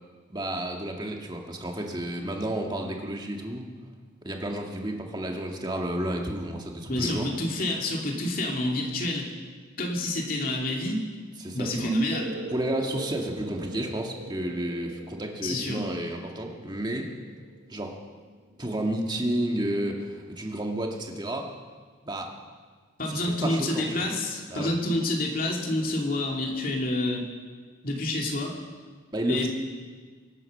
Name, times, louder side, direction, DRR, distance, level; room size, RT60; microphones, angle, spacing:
voice 1, 0.3-3.7 4.2-7.3 11.4-11.9 12.5-17.1 17.7-17.9 18.6-21.5 22.0-22.3 23.1-24.1 24.5-24.7 29.1-29.5, right 1 dB, 20° right, 1 dB, 1.8 m, -31 dB
voice 2, 6.9-9.3 9.8-11.0 11.5-12.4 15.4-15.8 23.0-27.3 27.8-28.5 29.3-29.5, left 1 dB, 45° left, 0 dB, 2.7 m, -28 dB
sound 1, 12.1-19.3, right 2 dB, 60° right, 1.3 m, -43 dB
24.0 x 9.0 x 6.5 m, 1.5 s
head